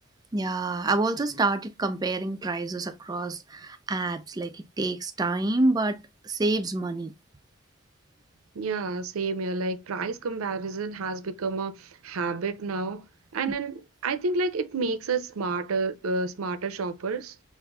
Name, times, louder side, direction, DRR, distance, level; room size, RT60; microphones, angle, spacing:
voice 1, 0.3-7.1, right 2 dB, 20° right, 0.3 m, -27 dB
voice 2, 8.6-13.0 13.3-17.4, right 3 dB, 85° right, 0.5 m, -30 dB
5.3 x 2.5 x 2.2 m
head